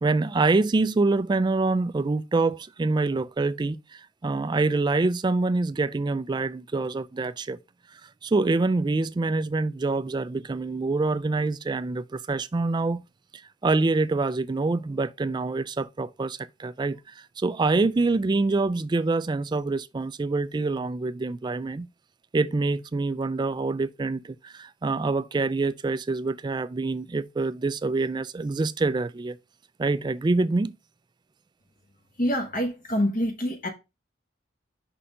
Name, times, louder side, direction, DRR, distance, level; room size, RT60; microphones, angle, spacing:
voice 1, 0.0-7.6 7.9-13.0 13.3-21.9 22.3-29.4 29.8-30.7, right 3 dB, 25° right, 0.3 m, -26 dB
voice 2, 32.2-33.7, equal, 45° left, 1.2 m, -26 dB
5.5 x 4.2 x 5.0 m
head